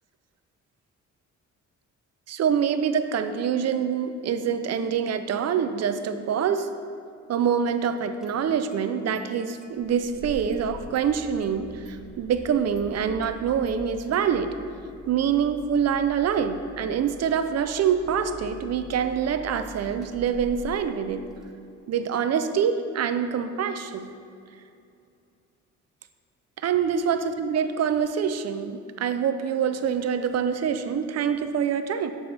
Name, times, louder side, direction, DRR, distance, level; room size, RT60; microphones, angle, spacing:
voice 1, 2.3-6.7 7.3-14.6 15.1-21.2 21.9-24.1 26.6-32.1, right 7 dB, 55° right, 9 dB, 0.6 m, -25 dB
Engine starting, 7.7-7.8 8.2-8.8 9.1-9.2 9.6-21.5, left 1 dB, ahead, 0.8 m, -45 dB
9.4 x 7.0 x 3.4 m, 2.5 s
cardioid pair, 90°, 30 cm